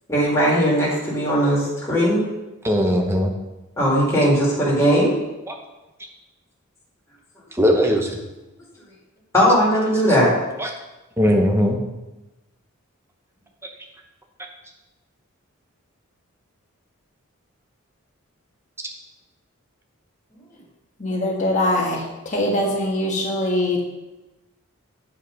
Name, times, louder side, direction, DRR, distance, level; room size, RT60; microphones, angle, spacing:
voice 1, 0.1-2.2 3.8-5.1 9.3-10.3, equal, 10° left, -7 dB, 2.4 m, -18 dB
voice 2, 2.6-3.3 5.5-5.6 7.5-8.2 9.7-10.2 10.6-10.7 11.2-11.8, equal, 10° right, 2 dB, 0.9 m, -20 dB
voice 3, 21.0-23.8, left 1 dB, 35° left, -1 dB, 1.5 m, -22 dB
8.5 x 5.2 x 5.2 m, 1.0 s
head